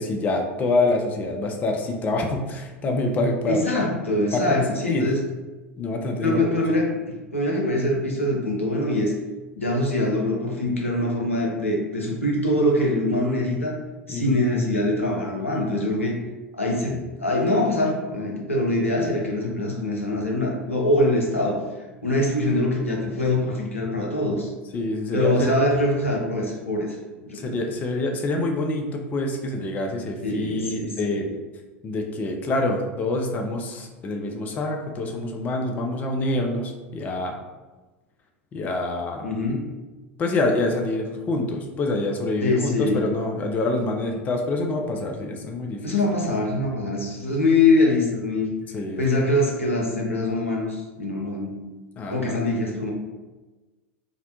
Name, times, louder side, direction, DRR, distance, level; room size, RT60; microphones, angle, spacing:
voice 1, 0.0-3.8 4.3-5.1 5.8-6.4 14.1-14.4 24.7-25.5 27.3-31.3 31.8-37.4 38.5-39.3 40.2-46.0 48.7-49.0 52.0-52.4, left 2 dB, 25° left, 2 dB, 0.3 m, -26 dB
voice 2, 3.5-5.2 6.2-9.1 9.6-13.8 14.1-16.2 16.5-21.6 22.0-24.5 25.1-27.0 27.3-27.6 30.2-30.9 39.2-39.6 42.4-43.0 45.8-48.5 49.0-51.6 52.1-52.9, left 1 dB, 80° left, -1 dB, 0.6 m, -23 dB
2.4 x 2.0 x 2.8 m, 1.2 s
figure-of-eight pair, 80°, 7 cm